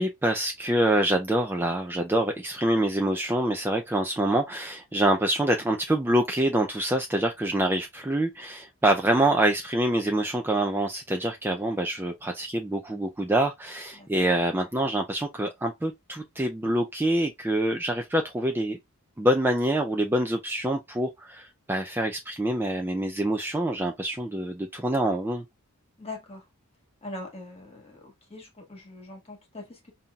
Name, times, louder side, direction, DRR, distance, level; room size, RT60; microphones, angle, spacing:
voice 1, 0.0-18.8 19.2-25.4, right 1 dB, 10° right, 0.4 m, -26 dB
voice 2, 13.9-14.3 26.0-26.4 27.0-29.9, left 2 dB, 30° left, 1.4 m, -42 dB
5.4 x 2.7 x 2.3 m
head